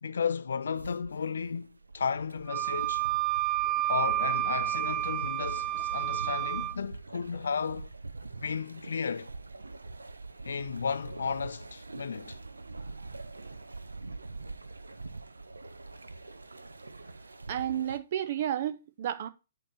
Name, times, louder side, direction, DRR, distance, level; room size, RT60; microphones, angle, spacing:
voice 1, 0.0-3.1 3.9-7.9 8.4-9.3 10.5-12.4, left 6 dB, 65° left, 0.6 m, -34 dB
sound 1, 0.7-18.0, right 3 dB, 75° right, 0.6 m, -44 dB
Wind instrument woodwind instrument, 2.5-6.8, right 15 dB, 15° right, 0.4 m, -30 dB
voice 2, 17.5-19.3, right 10 dB, 45° right, 0.8 m, -31 dB
8.7 x 3.2 x 5.9 m
figure-of-eight pair, 125°, 0 cm